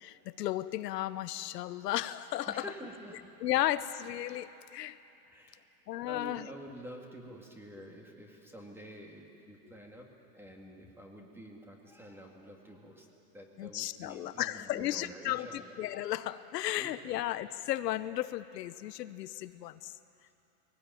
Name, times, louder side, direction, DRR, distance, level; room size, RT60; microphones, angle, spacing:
voice 1, 0.0-2.6 3.4-5.0 5.9-6.5 9.7-9.8 13.6-19.9, left 14 dB, 85° left, 13 dB, 0.9 m, -34 dB
voice 2, 2.5-3.2 5.3-5.6 6.0-10.1 10.3-15.7 16.8-17.3, equal, 5° right, 1 dB, 1.9 m, -48 dB
21.5 x 17.5 x 9.2 m, 2.8 s
supercardioid pair, 155°, 48 cm